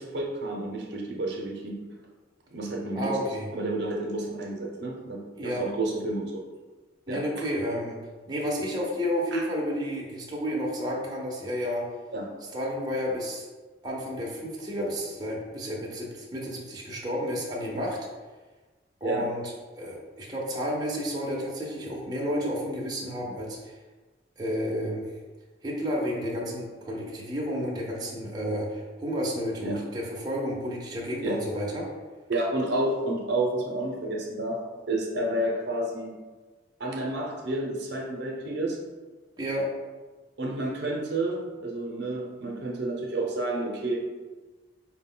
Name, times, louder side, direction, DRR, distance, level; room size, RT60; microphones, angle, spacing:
voice 1, 0.0-1.7 2.5-6.4 7.1-7.2 9.3-9.4 12.1-12.3 19.0-19.2 29.6-29.8 31.2-31.4 32.3-34.6 34.9-36.1 36.8-38.8 40.4-44.0, right 2 dB, 65° right, -1 dB, 0.7 m, -30 dB
voice 2, 3.0-3.5 5.4-5.6 7.1-8.0 8.3-11.8 12.5-13.5 13.8-18.0 19.0-19.4 19.8-23.6 24.4-25.0 25.6-31.9 39.4-39.7, equal, 20° right, -3 dB, 0.7 m, -31 dB
4.7 x 2.2 x 3.7 m, 1.3 s
head